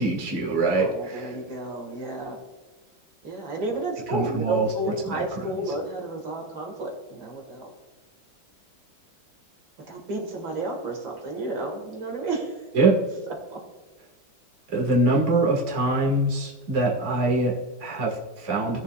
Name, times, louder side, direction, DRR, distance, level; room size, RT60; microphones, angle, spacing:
voice 1, 0.0-1.4 4.1-5.5 12.7-12.9 14.7-18.8, right 2 dB, 35° right, -3 dB, 2.2 m, -24 dB
voice 2, 0.8-2.4 3.2-7.7 9.9-12.5 13.5-13.6, right 2 dB, 70° right, 1 dB, 2.5 m, -31 dB
19.0 x 7.1 x 2.4 m, 1.3 s
omnidirectional pair, 2.2 m